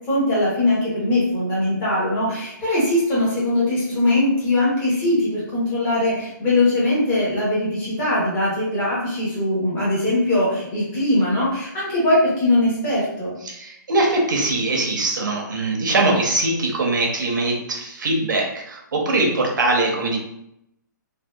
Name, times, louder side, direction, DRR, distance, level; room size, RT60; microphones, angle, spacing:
voice 1, 0.1-13.3, left 1 dB, 15° left, -8 dB, 0.8 m, -21 dB
voice 2, 13.4-20.2, right 2 dB, 70° right, 0 dB, 0.7 m, -22 dB
2.7 x 2.2 x 2.2 m, 0.79 s
hypercardioid pair, 170°, 11 cm